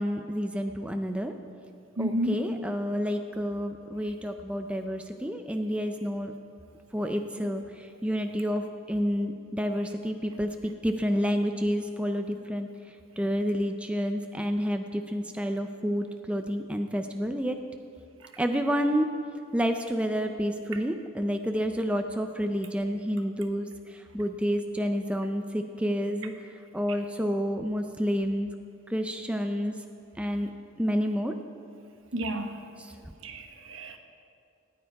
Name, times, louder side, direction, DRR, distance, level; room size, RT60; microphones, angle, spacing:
voice 1, 0.0-1.3 2.0-6.3 6.9-12.7 13.2-17.6 18.4-19.1 19.5-26.3 26.7-28.5 28.9-29.7 30.2-30.5 30.8-31.4 32.8-32.9, equal, 5° right, 5 dB, 0.4 m, -29 dB
voice 2, 2.0-2.4 32.1-32.5 33.2-34.0, equal, 75° right, 5 dB, 1.2 m, -31 dB
18.0 x 9.6 x 4.7 m, 2.4 s
head